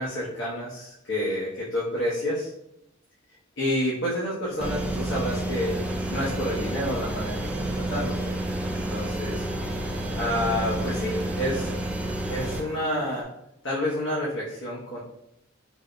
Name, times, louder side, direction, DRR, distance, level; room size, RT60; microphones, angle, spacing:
voice 1, 0.0-2.5 3.6-5.8 6.1-8.3 8.7-9.4 10.1-11.7 12.3-13.3 13.6-15.0, left 1 dB, 65° left, -7 dB, 0.9 m, -29 dB
sound 1, 4.6-12.6, right 1 dB, 5° right, 0.3 m, -30 dB
Engine, 5.5-13.2, right 1 dB, 50° right, 0.6 m, -43 dB
4.6 x 2.5 x 2.2 m, 0.84 s
head